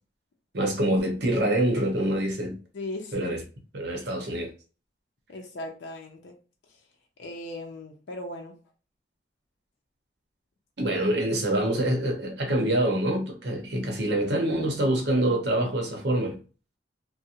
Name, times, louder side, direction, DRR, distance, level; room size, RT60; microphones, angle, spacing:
voice 1, 0.5-2.6 3.1-3.4 3.7-4.5 10.8-16.4, right 1 dB, 70° right, 0.7 m, -25 dB
voice 2, 2.7-3.3 5.3-6.4 6.7-6.8 7.2-8.6 10.8-11.0, left 1 dB, 80° left, 0.5 m, -38 dB
2.4 x 2.0 x 2.8 m
head